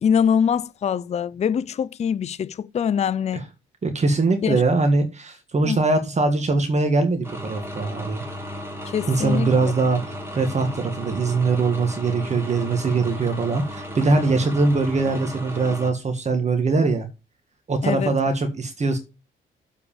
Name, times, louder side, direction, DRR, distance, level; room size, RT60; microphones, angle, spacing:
voice 1, 0.0-3.5 4.4-4.6 5.7-5.8 8.9-9.5 17.8-18.1, left 7 dB, 35° left, 0.4 m, -23 dB
voice 2, 3.8-8.2 9.1-17.1 17.7-19.0, right 3 dB, 35° right, 1.6 m, -22 dB
House electric, 7.2-15.9, equal, 10° right, 2.6 m, -35 dB
7.4 x 4.7 x 6.9 m
cardioid pair, 90°, 20 cm